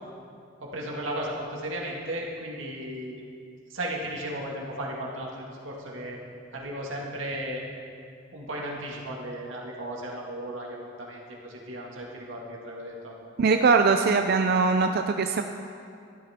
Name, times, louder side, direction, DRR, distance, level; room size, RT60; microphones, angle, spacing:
voice 1, 0.6-3.2 3.7-6.2 6.5-7.6 8.3-13.2, right 1 dB, 85° right, -2 dB, 1.9 m, -35 dB
voice 2, 13.4-15.4, right 4 dB, 55° right, 6 dB, 0.4 m, -21 dB
13.0 x 12.0 x 3.6 m, 2.4 s
head